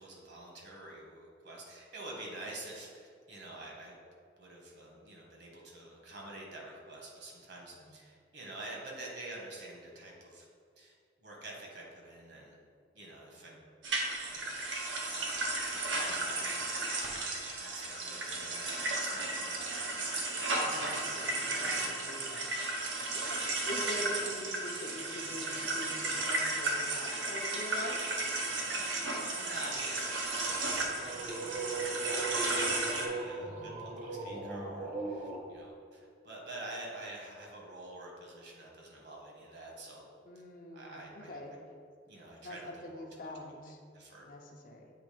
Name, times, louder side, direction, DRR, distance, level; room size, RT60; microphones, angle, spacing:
voice 1, 0.0-4.0 4.4-10.5 10.8-12.5 12.9-13.6 14.3-16.7 17.6-20.0 29.4-40.1 40.7-41.4 42.1-43.3 43.9-44.2, right 2 dB, 65° right, -1 dB, 1.4 m, -48 dB
sound 1, 13.8-33.1, right 2 dB, 85° right, 1.0 m, -34 dB
voice 2, 20.6-22.5 23.1-28.0 33.4-33.6 40.3-41.5 42.4-43.8 44.3-44.9, equal, 50° left, 2 dB, 0.7 m, -44 dB
sound 2, 30.5-35.4, right 2 dB, 45° right, 0.8 m, -39 dB
7.5 x 3.1 x 5.0 m, 2.1 s
head